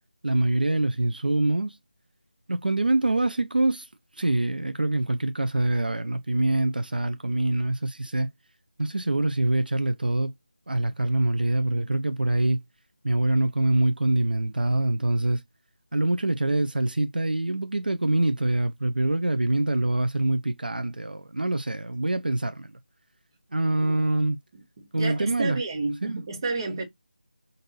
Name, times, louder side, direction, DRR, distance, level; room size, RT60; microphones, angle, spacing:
voice 1, 0.2-1.8 2.5-3.9 4.1-8.3 8.8-10.3 10.7-12.6 13.0-15.4 15.9-22.7 23.5-24.4 24.9-25.6 26.0-26.2, right 2 dB, 75° right, 0.5 m, -25 dB
voice 2, 24.8-26.8, right 3 dB, 30° right, 1.1 m, -30 dB
5.2 x 2.6 x 2.7 m
figure-of-eight pair, 160°, 5 cm